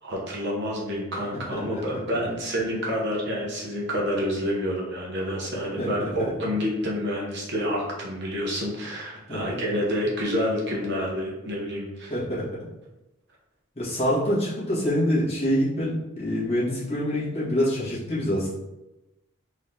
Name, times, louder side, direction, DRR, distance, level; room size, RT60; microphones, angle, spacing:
voice 1, 0.0-12.1, equal, 50° right, -3 dB, 0.8 m, -28 dB
voice 2, 1.5-1.8 5.8-6.1 6.4-6.5 9.3-9.6 12.1-12.5 13.7-18.5, equal, 30° left, -10 dB, 1.4 m, -26 dB
4.0 x 2.7 x 3.3 m, 0.98 s
head